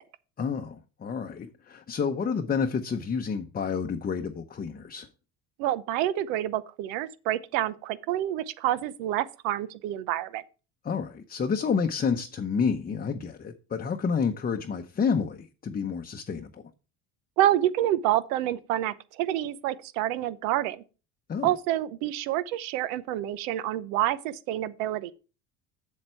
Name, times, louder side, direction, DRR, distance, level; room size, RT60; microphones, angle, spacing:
voice 1, 0.4-5.1 10.8-16.6 21.3-21.5, left 6 dB, 25° left, 0.7 m, -29 dB
voice 2, 5.6-10.4 17.4-20.8 21.4-25.1, right 13 dB, 85° right, 0.8 m, -28 dB
7.7 x 7.3 x 4.4 m
supercardioid pair, 105°, 39 cm